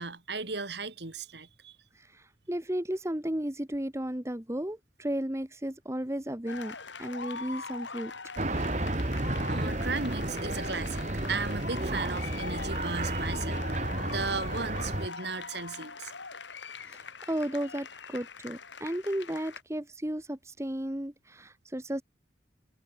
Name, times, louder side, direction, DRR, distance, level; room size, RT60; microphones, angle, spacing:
voice 1, 0.0-1.8 9.5-16.1, right 4 dB, 65° right, 3.1 m, -36 dB
voice 2, 1.9-8.1 16.9-22.0, right 1 dB, 15° right, 1.2 m, -34 dB
sound 1, 6.5-19.6, left 4 dB, 80° left, 7.5 m, -42 dB
sound 2, 8.4-15.1, right 1 dB, 40° right, 1.8 m, -32 dB
head